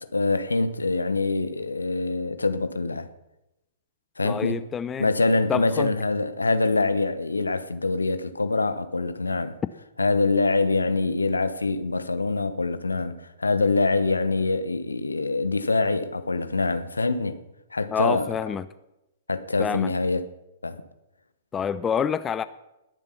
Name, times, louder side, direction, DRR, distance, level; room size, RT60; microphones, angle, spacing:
voice 1, 0.1-3.1 4.2-4.7 5.0-9.6 10.0-17.4 17.7-18.3 19.3-20.3 20.6-20.8, left 3 dB, 80° left, 1.1 m, -24 dB
voice 2, 4.2-5.1 5.5-5.9 17.9-18.7 19.6-19.9 21.5-22.5, left 7 dB, 15° left, 0.5 m, -27 dB
20.5 x 7.3 x 5.7 m
figure-of-eight pair, 110°, 0 cm